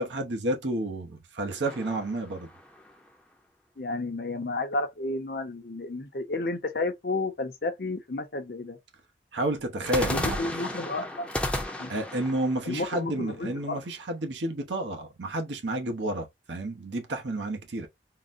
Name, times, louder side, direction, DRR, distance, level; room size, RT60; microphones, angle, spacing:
voice 1, 0.0-2.5 9.3-10.4 11.9-17.9, right 1 dB, 85° right, 0.8 m, -30 dB
sound 1, 1.6-3.1 9.8-13.8, left 1 dB, 5° left, 0.5 m, -34 dB
voice 2, 3.8-8.8 10.1-11.3 11.8-11.9 12.7-13.8, left 2 dB, 55° left, 0.6 m, -32 dB
3.9 x 2.1 x 2.5 m
head